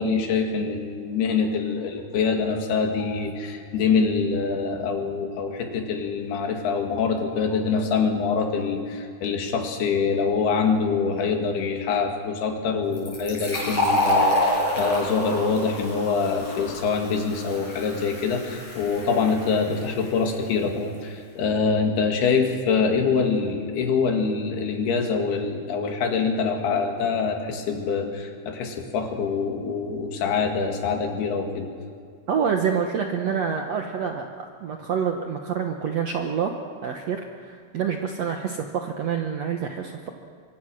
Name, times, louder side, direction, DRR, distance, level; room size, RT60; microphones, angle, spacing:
voice 1, 0.0-31.7, left 5 dB, 80° left, 3 dB, 4.0 m, -25 dB
Fill (with liquid), 12.9-20.3, left 1 dB, 40° left, 8.7 m, -27 dB
voice 2, 32.3-36.5 36.8-40.1, right 7 dB, 70° right, 3 dB, 1.6 m, -27 dB
24.5 x 24.5 x 6.3 m, 2.1 s
omnidirectional pair, 4.5 m